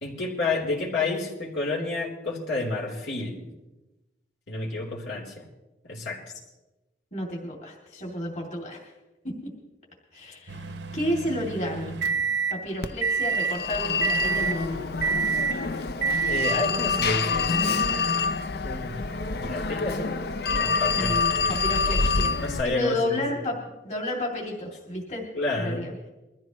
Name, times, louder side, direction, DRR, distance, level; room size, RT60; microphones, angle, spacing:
voice 1, 0.0-3.5 4.5-5.4 5.9-6.2 16.3-17.7 18.6-19.0 19.4-20.2 20.5-21.5 22.4-23.2 25.3-25.9, left 3 dB, 80° left, -4 dB, 3.8 m, -30 dB
voice 2, 7.1-8.9 10.1-10.6 10.9-12.0 12.5-15.1 20.9-22.3 22.6-25.2 25.5-25.9, left 1 dB, 40° left, -2 dB, 2.8 m, -31 dB
sound 1, 10.5-12.6 13.0-13.6 14.0-14.6 15.0-15.6 16.0-16.6, right 5 dB, 85° right, 1.0 m, -27 dB
Telephone, 12.8-22.6, left 4 dB, 60° left, 0.7 m, -27 dB
22.0 x 14.5 x 3.1 m, 1.0 s
head